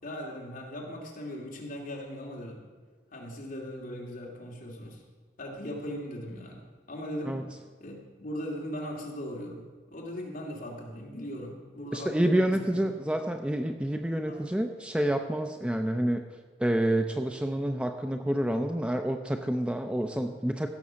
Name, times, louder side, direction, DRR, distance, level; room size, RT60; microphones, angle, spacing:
voice 1, 0.0-2.7 3.1-5.0 5.4-7.4 7.8-12.8 14.3-14.5 20.2-20.3, equal, 50° left, -1 dB, 2.6 m, -39 dB
voice 2, 11.9-16.2 16.6-20.7, right 1 dB, 5° right, 5 dB, 0.5 m, -28 dB
15.5 x 6.9 x 6.3 m, 1.5 s
head